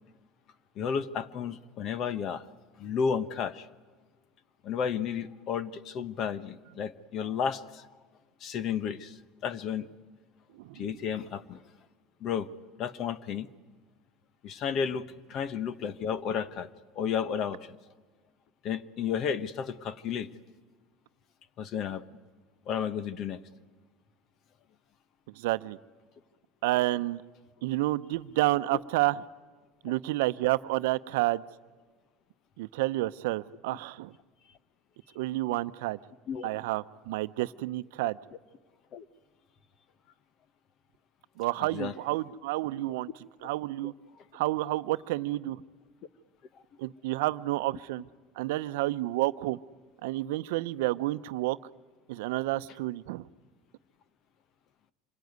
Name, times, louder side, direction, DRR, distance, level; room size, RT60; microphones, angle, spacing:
voice 1, 0.8-2.5 2.8-3.7 4.6-7.9 8.4-9.2 9.4-9.9 10.7-11.6 12.2-12.5 12.8-13.5 14.4-16.7 16.9-17.8 18.6-20.3 21.6-22.1 22.7-23.4 36.3-36.5 38.9-39.0 41.6-41.9 43.8-43.9 44.4-44.5, left 7 dB, 35° left, 16 dB, 0.9 m, -32 dB
voice 2, 10.6-11.0 25.4-25.8 26.6-27.2 27.6-29.2 29.8-31.4 32.6-34.1 35.2-36.0 36.4-38.2 41.4-43.1 43.4-43.9 44.3-45.6 46.8-48.0 48.4-49.6 50.0-51.6 52.1-53.3, right 18 dB, 85° right, 13 dB, 0.7 m, -30 dB
26.5 x 22.0 x 9.5 m, 1.4 s
cardioid pair, 180°, 0 cm